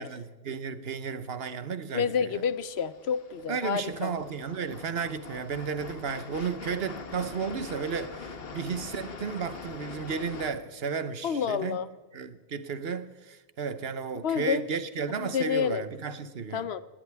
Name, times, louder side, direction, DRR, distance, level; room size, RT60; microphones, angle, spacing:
voice 1, 0.0-2.3 3.5-11.8 12.1-16.7, right 6 dB, 75° right, 1.2 m, -33 dB
voice 2, 1.9-4.1 11.2-11.9 14.2-14.6 15.2-15.8 16.5-16.8, left 7 dB, 80° left, 1.0 m, -29 dB
sound 1, 2.3-10.5, left 4 dB, 65° left, 1.4 m, -43 dB
19.0 x 18.0 x 3.5 m
omnidirectional pair, 1.1 m